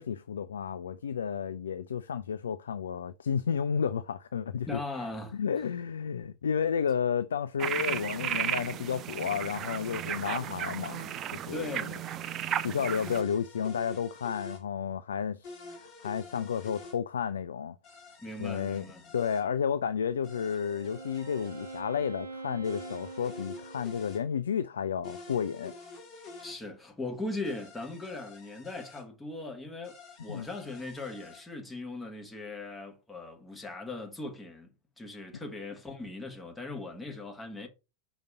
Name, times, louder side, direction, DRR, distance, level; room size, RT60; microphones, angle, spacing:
voice 1, 0.0-4.8 5.3-11.9 12.6-17.8 18.4-18.8 19.1-25.7 30.3-30.5, left 7 dB, 65° left, 0.3 m, -32 dB
voice 2, 4.7-5.7 11.5-12.3 18.2-19.1 26.4-37.7, left 2 dB, 10° left, 1.4 m, -39 dB
sound 1, 7.6-13.2, right 10 dB, 30° right, 0.4 m, -34 dB
sound 2, 13.0-14.6 15.4-17.0 17.8-19.4 20.2-21.8 22.6-24.2 25.0-26.6 27.4-29.0 29.8-31.4, left 3 dB, 40° left, 2.1 m, -48 dB
Wind instrument woodwind instrument, 19.9-24.3, right 3 dB, 70° right, 0.8 m, -44 dB
5.1 x 4.0 x 4.8 m
figure-of-eight pair, 90°, 0 cm